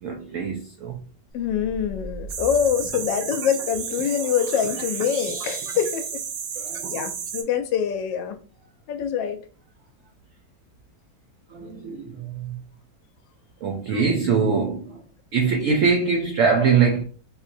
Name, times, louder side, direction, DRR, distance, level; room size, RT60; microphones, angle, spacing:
voice 1, 0.0-1.0 6.6-7.1 11.5-12.6 13.6-15.0 15.3-17.0, right 5 dB, 85° right, 0.6 m, -23 dB
voice 2, 1.3-6.0 6.9-8.4 8.9-9.4 13.9-14.1, left 8 dB, 85° left, 1.3 m, -25 dB
sound 1, 1.3-7.1, equal, 55° left, 0.6 m, -42 dB
sound 2, 2.3-7.4, right 7 dB, 70° right, 1.0 m, -32 dB
3.8 x 2.8 x 2.5 m
omnidirectional pair, 2.0 m